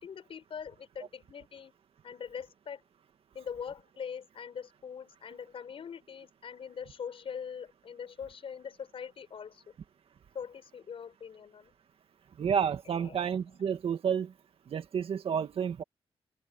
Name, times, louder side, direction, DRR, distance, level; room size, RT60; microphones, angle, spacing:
voice 1, 0.0-1.7 2.0-2.8 3.3-9.6 10.3-11.7 12.9-13.2, left 7 dB, 65° left, 5.8 m, -42 dB
voice 2, 12.4-14.3 14.7-15.8, right 7 dB, 70° right, 2.0 m, -30 dB
cardioid pair, 90°, 10 cm